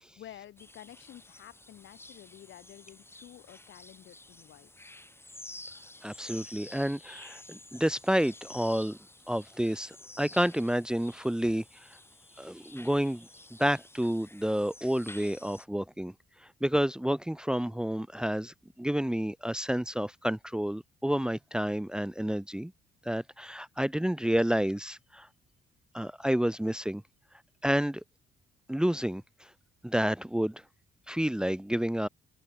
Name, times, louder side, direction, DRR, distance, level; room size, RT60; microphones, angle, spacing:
voice 1, 0.0-4.7, left 11 dB, 75° left, 6.0 m, -51 dB
sound 1, 0.6-15.7, left 2 dB, 10° left, 2.0 m, -51 dB
voice 2, 6.0-9.0 9.3-11.9 12.4-13.3 13.6-16.1 16.6-22.7 23.0-25.3 25.9-27.0 27.6-28.0 28.7-29.2 29.8-30.6 31.1-32.1, equal, 5° right, 1.1 m, -29 dB
open air
cardioid pair, 90°, 20 cm